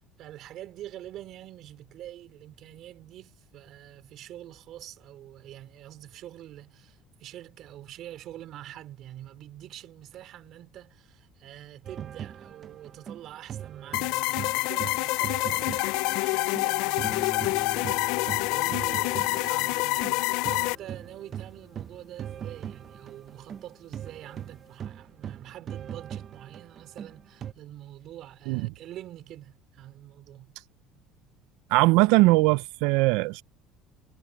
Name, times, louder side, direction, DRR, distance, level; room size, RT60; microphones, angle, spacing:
voice 1, 0.0-30.5, right 13 dB, 50° right, 3.9 m, -46 dB
sound 1, 11.8-16.7 17.0-27.5, right 9 dB, 35° right, 0.6 m, -40 dB
sound 2, 13.9-20.8, left 23 dB, 75° left, 0.4 m, -27 dB
sound 3, 17.0-23.5 24.0-24.5, left 6 dB, 25° left, 0.9 m, -45 dB
voice 2, 31.7-33.4, right 22 dB, 80° right, 0.4 m, -20 dB
cardioid pair, 150°, 0 cm